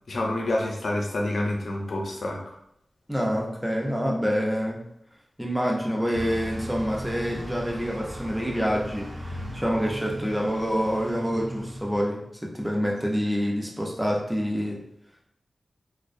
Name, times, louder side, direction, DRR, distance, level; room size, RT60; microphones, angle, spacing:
voice 1, 0.1-2.5, left 1 dB, 85° left, 0 dB, 0.5 m, -28 dB
voice 2, 3.1-4.8 5.4-14.8, equal, 5° right, -2 dB, 0.5 m, -27 dB
Bus, 6.1-12.0, equal, 90° right, 0.6 m, -37 dB
2.5 x 2.1 x 2.5 m, 0.76 s
wide cardioid pair, 85°, 0 cm